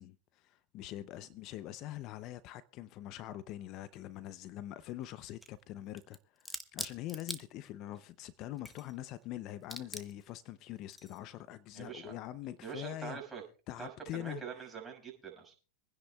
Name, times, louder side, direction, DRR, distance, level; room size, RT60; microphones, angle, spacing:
voice 1, 0.0-13.2 13.7-14.4, left 13 dB, 45° left, 0.6 m, -44 dB
sound 1, 3.9-4.0 4.8-5.6 6.0-8.0 8.4-9.3 9.6-10.3 10.9-11.2, left 1 dB, 5° left, 1.3 m, -44 dB
voice 2, 11.7-12.1 12.6-13.4 13.8-15.5, right 6 dB, 10° right, 6.0 m, -44 dB
26.0 x 10.0 x 2.3 m
hypercardioid pair, 115°, 0 cm